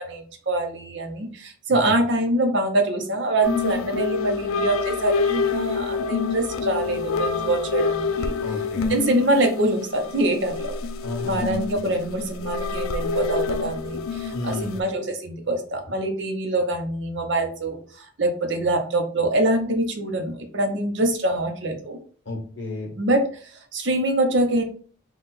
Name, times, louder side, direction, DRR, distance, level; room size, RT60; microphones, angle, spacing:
voice 1, 0.0-8.4 8.9-10.8 11.2-22.0 23.0-24.6, right 1 dB, 60° right, 4 dB, 0.8 m, -24 dB
sound 1, 3.4-14.8, left 5 dB, 90° left, 0.4 m, -27 dB
voice 2, 8.4-8.9 11.0-11.8 14.3-14.8 22.2-22.9, left 2 dB, 60° left, -1 dB, 1.5 m, -32 dB
3.7 x 2.4 x 4.1 m, 0.43 s
head